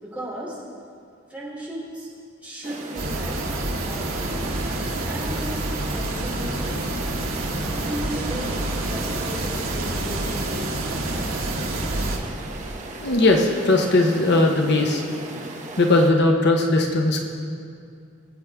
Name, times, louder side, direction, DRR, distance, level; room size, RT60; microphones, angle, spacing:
voice 1, 0.0-0.6 1.3-2.1 2.4-3.5 3.8-4.6 5.0-7.2 7.7-11.4, equal, 5° right, -6 dB, 3.0 m, -36 dB
sound 1, 2.6-16.1, right 2 dB, 35° right, 1.1 m, -37 dB
sound 2, 2.9-12.2, right 2 dB, 85° right, 1.7 m, -28 dB
voice 2, 13.0-15.0 15.8-17.2, left 2 dB, 55° left, 2 dB, 0.9 m, -18 dB
22.0 x 8.3 x 3.5 m, 2.4 s
head